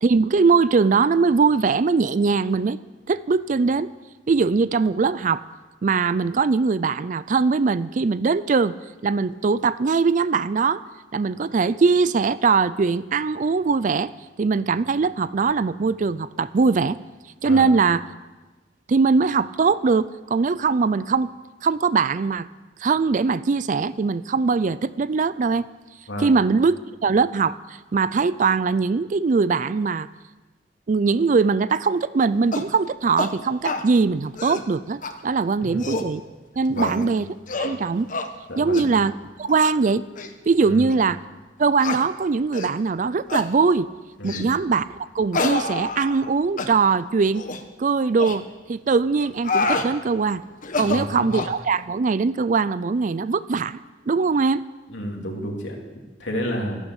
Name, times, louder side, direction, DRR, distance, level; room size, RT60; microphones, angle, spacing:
voice 1, 0.0-2.8 3.1-3.9 4.3-5.4 5.8-8.7 9.0-10.8 11.1-14.1 14.4-17.0 17.4-18.0 18.9-21.3 21.6-22.5 22.8-25.7 26.2-30.1 30.9-36.2 36.6-37.3 37.6-38.1 38.6-39.1 39.4-40.0 40.5-41.2 41.6-43.9 44.2-47.4 47.8-48.4 48.7-50.4 50.8-53.8 54.1-54.6, right 4 dB, 45° right, 17 dB, 0.4 m, -21 dB
sound 1, 32.5-32.7 33.2-33.3 33.6-33.9 34.3-34.7 35.0-35.1 35.6-36.1 36.8-37.1 37.5-37.8 38.1-38.3 38.7-38.9 39.5-39.7 40.2-40.3 40.9-41.0 41.8-42.0 42.5-42.8 43.3-43.5 44.3-44.5 45.3-46.3 46.6-46.7 47.3-47.6 48.2-48.4 49.2-49.9 50.6-51.6, left 3 dB, 45° left, 1.1 m, -27 dB
voice 2, 36.7-37.0 38.5-38.8 40.6-40.9 44.2-44.5 50.8-51.3 54.9-56.8, equal, 85° left, 0 dB, 3.1 m, -31 dB
14.0 x 11.5 x 8.2 m, 1.2 s
head